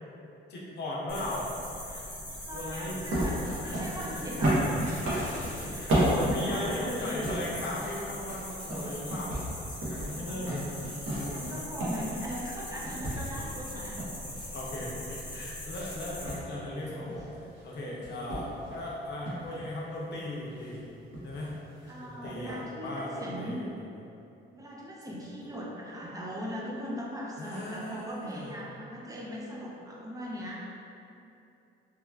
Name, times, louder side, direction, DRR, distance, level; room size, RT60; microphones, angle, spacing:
voice 1, 0.5-1.5 2.5-3.0 3.4-4.7 5.4-9.4 9.9-10.7 11.1-11.7 13.0-13.5 14.5-20.9 21.2-21.6 22.0-24.0 25.1-25.5 27.4-28.6, left 1 dB, 60° left, -4 dB, 0.6 m, -38 dB
sound 1, 1.1-16.3, left 1 dB, 20° left, 1.0 m, -41 dB
voice 2, 2.4-4.9 5.6-7.3 10.1-10.5 11.2-14.0 21.9-23.6 24.5-30.6, equal, 15° right, -5 dB, 0.5 m, -40 dB
sound 2, 3.1-7.7 8.0-12.6 12.8-15.2 15.7-15.9 16.2-17.6 18.0-18.8 19.2-19.5 20.5-20.8 21.1-21.5 21.8-21.9 22.2-22.6, right 1 dB, 75° right, 0.9 m, -32 dB
sound 3, 4.8-5.9 6.7-7.0 7.3-7.4 7.6-7.9 8.5-8.7, equal, 40° right, 1.2 m, -48 dB
3.0 x 2.3 x 2.3 m, 2.8 s
cardioid pair, 90°, 20 cm